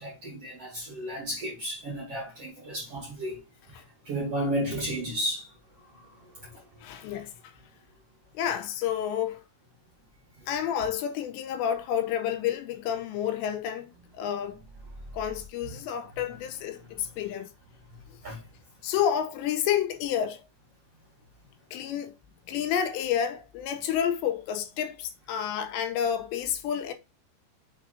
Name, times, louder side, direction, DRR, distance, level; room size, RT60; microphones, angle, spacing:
voice 1, 0.0-3.4 3.7-6.6 18.2-18.4, equal, 55° right, 1.8 m, -34 dB
voice 2, 6.8-7.3 8.3-9.4 10.5-13.9 14.2-14.6 15.1-17.5 18.8-20.4 21.7-22.1 22.5-26.9, left 9 dB, 85° left, 3.0 m, -29 dB
6.8 x 3.7 x 4.0 m
omnidirectional pair, 5.1 m